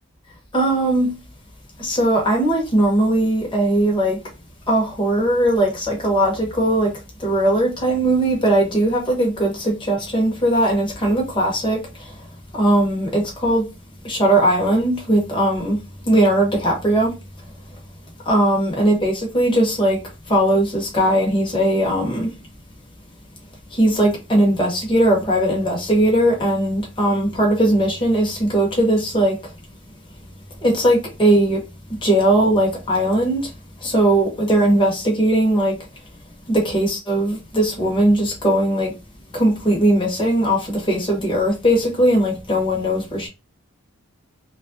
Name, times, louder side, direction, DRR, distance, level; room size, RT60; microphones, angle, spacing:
voice 1, 0.5-1.1 1.8-4.2 4.7-6.9 7.2-12.2 12.5-13.7 14.0-15.8 16.0-17.1 18.2-20.0 20.3-22.3 23.7-29.4 30.6-31.6 32.0-33.5 33.8-35.8 36.5-38.9 39.3-43.3, right 1 dB, 20° left, 0.9 m, -19 dB
3.0 x 2.4 x 2.7 m
head